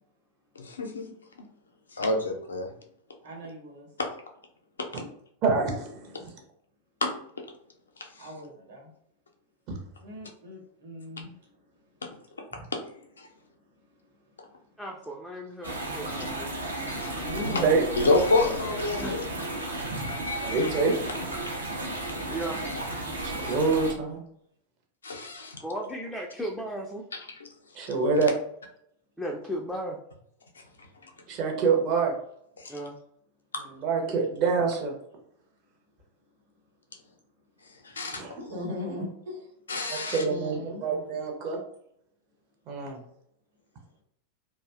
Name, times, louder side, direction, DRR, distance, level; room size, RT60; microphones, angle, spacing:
voice 1, 0.6-1.1 1.9-2.7 4.0-4.1 7.0-7.4 12.0-12.1 12.7-12.8 13.2-13.3 17.0-17.1 17.9-19.2 25.0-25.6 32.6-32.8 37.9-38.2 39.7-40.2, left 2 dB, 70° left, 3 dB, 0.4 m, -27 dB
voice 2, 3.2-3.9 8.2-8.9 10.0-11.5 17.2-18.2 38.3-39.5 40.1-40.8, left 1 dB, 60° right, -1 dB, 1.0 m, -39 dB
voice 3, 5.4-6.1 17.6-17.8 20.4-20.9 23.2-24.2 27.8-28.3 31.3-32.1 33.8-34.9 38.2-38.4 39.9-41.6 42.7-43.0, right 4 dB, 40° right, 2 dB, 0.6 m, -26 dB
voice 4, 14.8-16.5 19.0-19.2 22.3-22.7 25.6-27.0 29.2-30.0 32.7-32.9, right 1 dB, ahead, -2 dB, 0.4 m, -35 dB
sound 1, 15.6-23.9, right 1 dB, 80° right, 0.6 m, -33 dB
2.6 x 2.1 x 2.3 m, 0.70 s
figure-of-eight pair, 90°, 0 cm